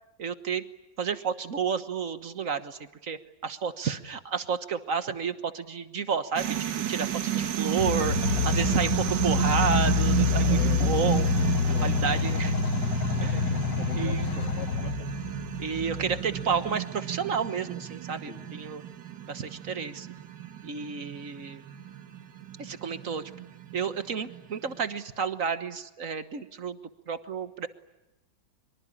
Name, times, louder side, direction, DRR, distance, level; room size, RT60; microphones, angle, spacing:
voice 1, 0.2-0.6 1.0-11.5 11.8-12.5 13.2-13.5 13.9-14.3 15.6-18.8 19.2-20.1 20.6-21.7 22.6-23.2 23.7-26.8 27.1-27.7, right 6 dB, 50° right, 11 dB, 1.5 m, -31 dB
sound 1, 6.4-24.8, right 11 dB, 75° right, 1.9 m, -32 dB
sound 2, 7.8-16.7, left 6 dB, 80° left, 1.8 m, -27 dB
voice 2, 10.5-10.9 11.2-11.3 11.7-12.0 12.3-12.9 13.3-15.1 18.3-18.5, left 4 dB, 40° left, 5 dB, 2.6 m, -43 dB
24.5 x 23.5 x 9.9 m, 0.99 s
omnidirectional pair, 2.0 m